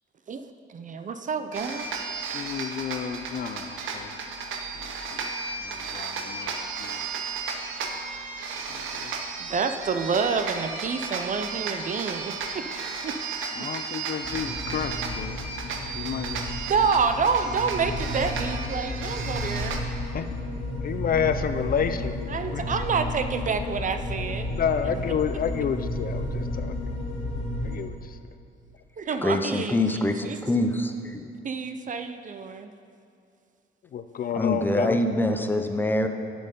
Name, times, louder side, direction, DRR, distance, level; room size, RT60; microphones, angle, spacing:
voice 1, 0.7-1.9 9.4-12.7 13.0-13.2 13.6-13.7 16.7-19.8 22.3-24.5 29.0-30.4 31.4-32.7, right 5 dB, 40° right, 9 dB, 0.5 m, -28 dB
sound 1, 1.5-19.8, right 5 dB, 80° right, 0.9 m, -34 dB
voice 2, 2.3-4.1 5.1-5.3 5.6-7.1 8.7-9.1 13.6-15.4 15.9-16.4 20.1-20.3 20.8-22.2 22.5-22.6 24.5-26.7 27.6-28.0 33.9-35.0, left 7 dB, 45° left, 10 dB, 0.4 m, -30 dB
sound 2, 14.2-27.8, left 1 dB, 75° left, 1.6 m, -32 dB
voice 3, 29.2-31.2 34.3-36.1, left 1 dB, 10° left, 6 dB, 0.7 m, -25 dB
7.8 x 7.1 x 5.3 m, 2.4 s
cardioid pair, 90°, 20 cm